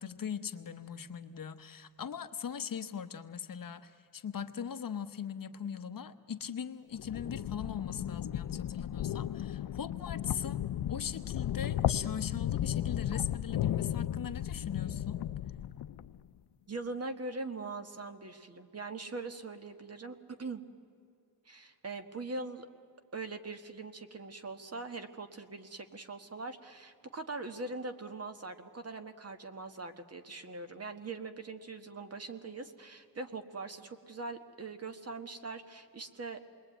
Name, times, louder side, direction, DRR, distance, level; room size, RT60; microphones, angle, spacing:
voice 1, 0.0-10.6 10.9-15.2, left 7 dB, 60° left, 9 dB, 1.1 m, -40 dB
sound 1, 6.9-16.2, left 11 dB, 85° left, 0.6 m, -35 dB
voice 2, 16.7-20.6 21.4-22.7 23.1-36.4, right 3 dB, 40° right, 8 dB, 1.6 m, -42 dB
27.5 x 21.5 x 9.2 m, 2.5 s
wide cardioid pair, 165°, 38 cm